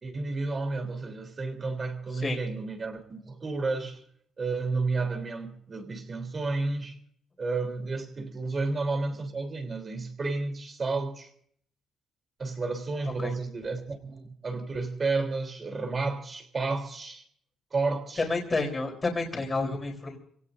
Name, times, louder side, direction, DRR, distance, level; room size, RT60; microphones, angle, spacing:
voice 1, 0.0-4.0 4.4-7.0 7.4-11.3 12.4-17.2 17.7-18.2, right 3 dB, 35° right, 6 dB, 3.5 m, -31 dB
voice 2, 18.2-20.2, left 3 dB, 30° left, 2 dB, 4.0 m, -29 dB
27.0 x 17.5 x 2.7 m, 0.62 s
cardioid pair, 90°, 0 cm